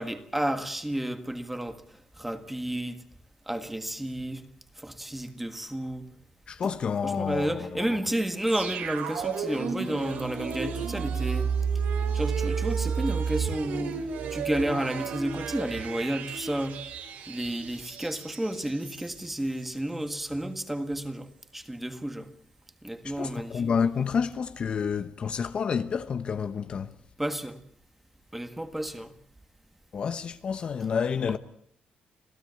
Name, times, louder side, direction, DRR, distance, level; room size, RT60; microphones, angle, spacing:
voice 1, 0.0-1.8 2.2-3.0 3.5-4.4 4.8-6.1 7.0-11.5 12.1-16.8 17.3-22.3 22.8-23.6 27.2-27.6 28.3-29.2, right 1 dB, 5° right, 1.7 m, -31 dB
voice 2, 6.5-8.0 23.0-27.0 29.9-31.4, left 6 dB, 40° left, 0.9 m, -29 dB
sound 1, 8.5-19.3 19.6-19.7, right 6 dB, 85° right, 3.9 m, -32 dB
27.0 x 16.5 x 8.3 m
cardioid pair, 160°, 3 cm